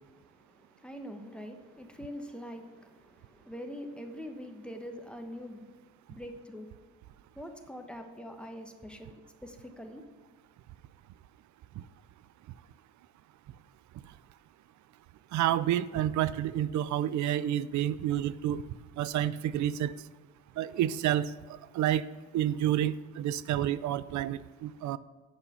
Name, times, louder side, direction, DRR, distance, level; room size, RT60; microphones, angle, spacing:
voice 1, 0.1-5.7 6.1-6.7 7.3-10.0, equal, 5° left, 1.1 m, -44 dB
voice 2, 15.3-18.6 19.0-19.9 20.6-21.3 21.7-22.0 22.3-25.0, right 11 dB, 70° right, 0.5 m, -29 dB
8.6 x 5.5 x 6.8 m
cardioid pair, 90°, 30 cm